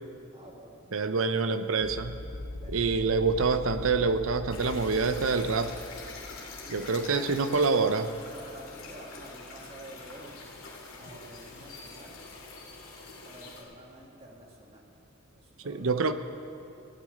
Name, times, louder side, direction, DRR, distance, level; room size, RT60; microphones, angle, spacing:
voice 1, 0.3-1.6 2.6-3.5 6.5-7.6 8.3-10.4 11.0-12.2 13.2-14.8 15.3-16.1, right 1 dB, 30° right, -2 dB, 2.1 m, -50 dB
voice 2, 0.9-2.2 2.7-5.7 6.7-8.1 15.6-16.1, right 4 dB, 75° right, 10 dB, 0.7 m, -26 dB
sound 1, 1.8-13.7, left 2 dB, 60° left, 0.7 m, -45 dB
sound 2, 4.5-13.6, left 3 dB, 75° left, 2.5 m, -46 dB
15.5 x 6.1 x 9.2 m, 2.6 s
head